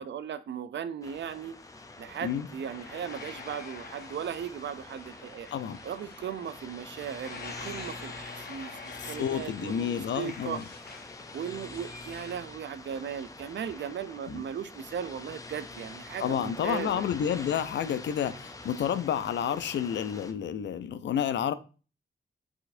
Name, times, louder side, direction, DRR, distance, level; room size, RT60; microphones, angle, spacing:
voice 1, 0.0-1.5 2.0-5.5 5.8-10.6 11.3-17.0, right 8 dB, 80° right, 0.5 m, -37 dB
sound 1, 1.0-20.3, left 2 dB, 20° left, 0.5 m, -46 dB
sound 2, 2.7-12.4, left 4 dB, 60° left, 0.8 m, -47 dB
voice 2, 8.9-10.6 14.3-14.4 16.2-21.5, left 9 dB, 85° left, 0.4 m, -30 dB
4.4 x 4.1 x 2.6 m
wide cardioid pair, 150°, 18 cm